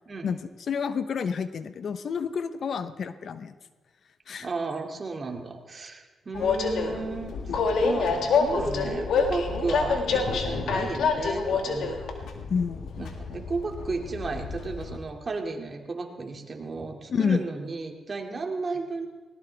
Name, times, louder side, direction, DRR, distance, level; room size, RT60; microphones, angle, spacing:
voice 1, 0.7-3.5 4.3-4.5 12.5-13.1 17.1-17.4, left 6 dB, 65° left, 12 dB, 0.9 m, -29 dB
voice 2, 4.4-12.0 13.0-19.1, right 3 dB, 40° right, 3 dB, 2.5 m, -34 dB
Train, 6.3-15.0, left 4 dB, 80° left, 2.1 m, -27 dB
20.5 x 18.5 x 3.5 m, 1.3 s
cardioid pair, 75°, 0 cm